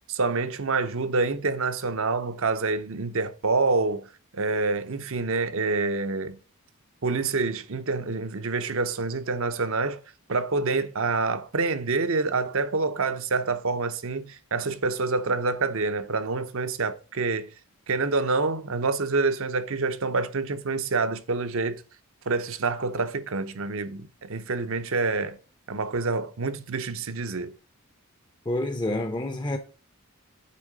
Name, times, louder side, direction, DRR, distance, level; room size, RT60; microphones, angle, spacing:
voice 1, 0.1-4.1 4.3-6.4 7.0-10.0 10.3-17.5 17.9-21.8 22.3-25.4 25.7-27.6, right 3 dB, 60° right, 0.7 m, -27 dB
voice 2, 28.5-29.6, left 1 dB, 20° left, 0.6 m, -28 dB
8.5 x 3.6 x 4.8 m
head